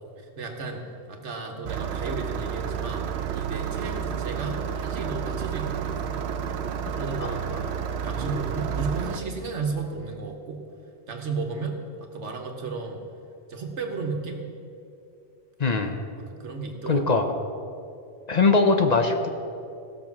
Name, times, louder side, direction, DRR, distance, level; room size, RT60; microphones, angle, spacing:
voice 1, 0.2-6.2 7.0-10.6 11.1-13.0 13.5-14.4 16.2-17.0, right 3 dB, 90° right, 3 dB, 1.6 m, -34 dB
Engine starting, 1.6-9.2, right 8 dB, 70° right, 0.9 m, -30 dB
voice 2, 15.6-16.0 16.9-17.2 18.3-19.3, left 4 dB, 45° left, 5 dB, 0.7 m, -21 dB
16.5 x 6.5 x 5.9 m, 2.7 s
omnidirectional pair, 1.2 m